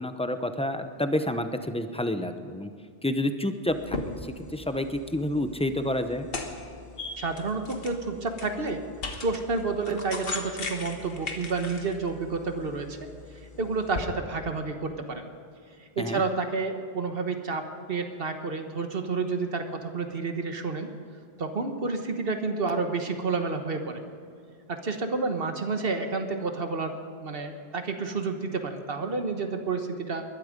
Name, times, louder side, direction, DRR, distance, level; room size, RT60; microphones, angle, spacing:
voice 1, 0.0-2.7 3.0-6.3 16.0-16.2, left 1 dB, 5° left, 8 dB, 0.7 m, -29 dB
sound 1, 3.7-14.0, left 3 dB, 65° left, 1.6 m, -39 dB
voice 2, 7.2-8.8 9.2-13.0 13.6-15.3 15.8-20.9 21.4-24.0 24.7-26.9 27.2-30.2, right 4 dB, 65° right, 6 dB, 1.4 m, -30 dB
21.0 x 12.0 x 5.2 m, 2.4 s
omnidirectional pair, 1.0 m